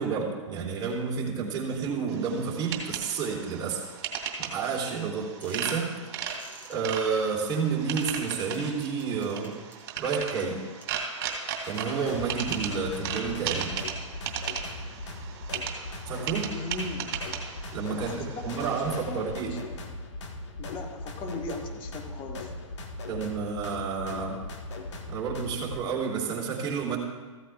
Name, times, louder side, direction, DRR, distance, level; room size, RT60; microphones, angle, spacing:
voice 1, 0.0-3.8 4.4-5.9 6.7-9.6 10.0-10.6 11.6-13.7 16.1-16.5 17.7-19.6 23.1-24.4 25.1-27.0, right 5 dB, 25° right, -4 dB, 3.4 m, -30 dB
sound 1, 2.1-18.8, right 7 dB, 50° right, 2.6 m, -37 dB
sound 2, 5.4-5.8 6.3-7.0 8.0-9.8 10.3-10.4 10.8-10.9 11.3-11.4, equal, 10° left, 2.4 m, -49 dB
sound 3, 11.6-25.8, left 2 dB, 60° left, 1.6 m, -39 dB
voice 2, 16.5-17.1 17.9-19.6 20.6-22.5, left 3 dB, 30° left, 3 dB, 1.6 m, -38 dB
15.0 x 14.0 x 2.4 m, 1.4 s
hypercardioid pair, 120°, 17 cm